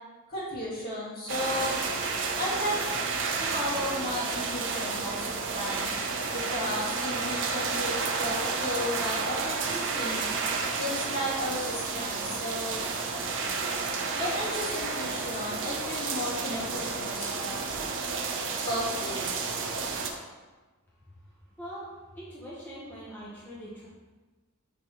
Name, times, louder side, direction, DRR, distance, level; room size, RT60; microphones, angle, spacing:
voice 1, 0.3-1.8 2.3-2.9 3.4-5.9 6.3-10.2 10.8-12.8 14.2-17.6 18.4-19.4, left 1 dB, 45° left, -7 dB, 2.0 m, -34 dB
sound 1, 1.3-20.1, right 4 dB, 55° right, 0.7 m, -31 dB
voice 2, 22.2-23.9, equal, 10° left, -9 dB, 1.1 m, -42 dB
5.9 x 5.8 x 3.1 m, 1.2 s
head